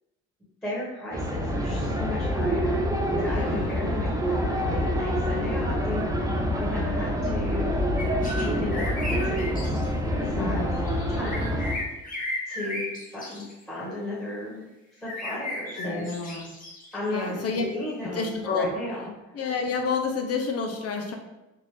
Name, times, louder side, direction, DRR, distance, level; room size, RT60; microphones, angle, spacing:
voice 1, 0.6-7.8 8.4-9.7 10.1-10.6 11.1-11.5 12.5-14.6 15.0-16.1 16.9-19.1, left 1 dB, 5° left, -9 dB, 1.4 m, -35 dB
sound 1, 1.1-11.8, equal, 10° right, 0.5 m, -26 dB
voice 2, 1.7-2.0 3.2-3.8 5.6-6.1 10.3-10.8 15.8-16.5 17.1-17.6 18.1-18.7 19.0-19.1 19.3-21.1, left 4 dB, 55° left, 3 dB, 0.7 m, -30 dB
sound 2, 8.0-8.5 8.7-9.9 10.7-13.6 15.1-17.6, left 1 dB, 30° left, 1.1 m, -35 dB
3.7 x 2.5 x 3.2 m, 1.0 s
cardioid pair, 90°, 30 cm